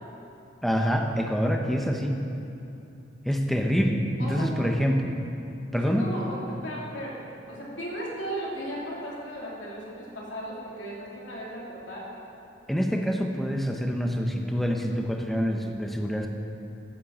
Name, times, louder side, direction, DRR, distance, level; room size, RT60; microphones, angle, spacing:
voice 1, 0.6-2.2 3.2-5.2 5.7-6.1 12.7-16.3, equal, ahead, 2 dB, 0.8 m, -26 dB
voice 2, 4.2-4.5 5.7-7.2 7.5-12.1, equal, 70° left, -5 dB, 2.9 m, -36 dB
12.5 x 7.6 x 7.1 m, 2.7 s
head